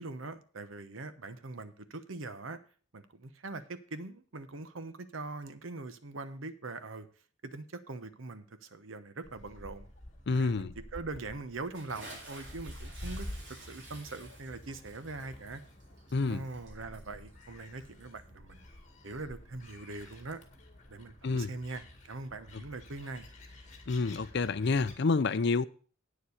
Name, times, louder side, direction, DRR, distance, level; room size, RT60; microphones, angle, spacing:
voice 1, 0.0-2.6 2.9-7.1 7.4-9.9 10.3-13.3 13.7-15.6 16.2-18.6 19.0-20.4 20.9-23.3, right 3 dB, 80° right, 0.9 m, -42 dB
Gull seagull, 9.2-24.9, left 1 dB, 35° left, 2.1 m, -49 dB
voice 2, 10.3-10.7 16.1-16.4 21.2-21.5 23.9-25.7, left 4 dB, 55° left, 0.5 m, -28 dB
Bathtub (filling or washing) / Splash splatter, 11.7-18.3, right 2 dB, 60° right, 3.9 m, -52 dB
8.9 x 7.1 x 6.4 m
head